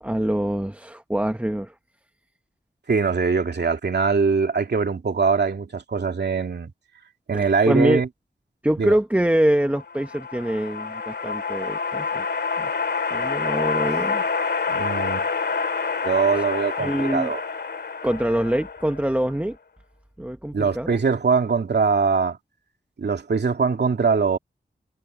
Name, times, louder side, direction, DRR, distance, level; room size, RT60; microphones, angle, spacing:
voice 1, 0.0-1.7 7.3-8.0 8.6-12.2 12.6-12.7 13.1-14.2 16.3-16.4 16.8-17.3 18.0-19.6 20.2-21.0, right 1 dB, 10° right, 1.3 m, -24 dB
voice 2, 2.9-6.7 7.3-8.1 8.8-8.9 13.9-14.0 14.7-15.3 16.0-17.4 20.5-22.4 23.0-24.4, right 5 dB, 75° right, 2.5 m, -22 dB
sound 1, 9.7-19.3, left 5 dB, 75° left, 2.4 m, -27 dB
wide cardioid pair, 85°, 18 cm